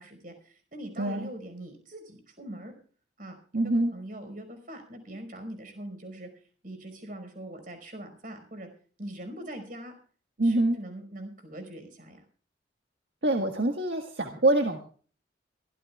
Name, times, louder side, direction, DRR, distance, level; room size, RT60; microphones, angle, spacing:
voice 1, 0.0-2.7 3.2-3.4 3.6-6.3 6.6-8.7 9.0-9.9 10.4-12.2, right 1 dB, 50° right, 6 dB, 5.1 m, -42 dB
voice 2, 1.0-1.3 3.5-3.9 10.4-10.8 13.2-14.8, right 1 dB, 65° right, 3 dB, 1.7 m, -25 dB
23.5 x 16.0 x 2.4 m, 0.42 s
head